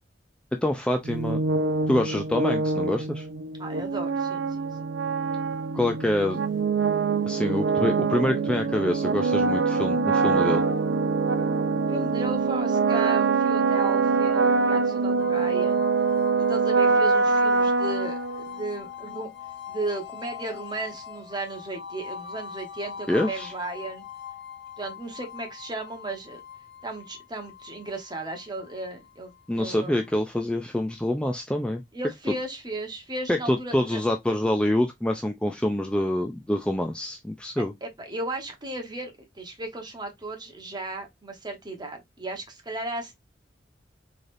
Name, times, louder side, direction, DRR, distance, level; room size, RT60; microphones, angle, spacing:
voice 1, 0.6-1.4 1.9-3.3 5.7-6.4 7.2-10.6 23.1-23.5 29.5-31.8 33.3-37.7, left 1 dB, 5° left, 0.4 m, -26 dB
sound 1, 1.0-18.7, right 4 dB, 70° right, 0.5 m, -24 dB
voice 2, 3.6-4.5 11.9-15.9 16.5-19.3 19.7-24.0 24.8-26.4 26.8-30.0 31.9-34.0 37.8-43.2, right 2 dB, 25° right, 1.1 m, -35 dB
sound 2, 15.2-30.1, left 8 dB, 85° left, 0.8 m, -42 dB
3.9 x 3.3 x 2.6 m
head